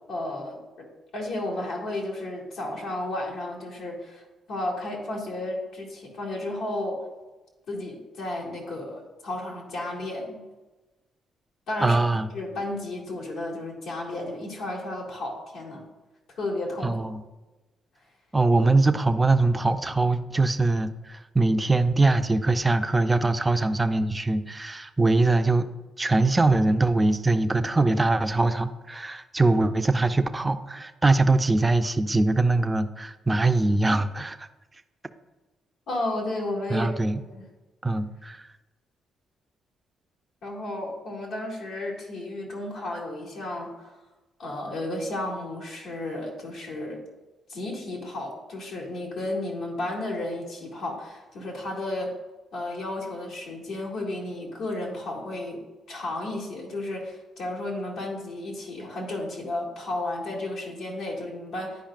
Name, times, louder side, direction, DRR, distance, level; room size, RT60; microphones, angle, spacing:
voice 1, 0.1-0.9 1.1-7.0 7.7-10.4 11.7-12.0 12.3-15.8 16.4-17.0 35.9-36.9 37.3-37.4 40.4-44.0 44.4-47.0 47.5-52.2 52.5-61.8, left 2 dB, 80° left, -4 dB, 2.1 m, -33 dB
voice 2, 11.8-12.3 16.8-17.2 18.3-25.7 26.0-34.5 36.7-37.2 37.8-38.5, right 2 dB, 15° right, 8 dB, 0.4 m, -22 dB
10.0 x 5.0 x 2.4 m, 1.1 s
cardioid pair, 90°, 0 cm